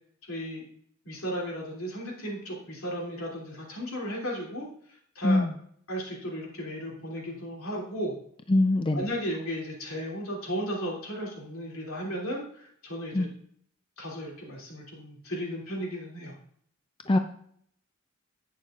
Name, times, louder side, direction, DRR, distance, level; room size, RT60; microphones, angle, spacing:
voice 1, 0.2-0.7 1.0-5.4 5.9-8.1 8.9-13.3 14.0-16.3, equal, 85° left, -2 dB, 2.9 m, -35 dB
voice 2, 8.5-9.1 13.1-13.3 17.1-17.2, left 2 dB, 25° left, 7 dB, 0.4 m, -22 dB
11.0 x 8.2 x 2.4 m, 0.64 s
head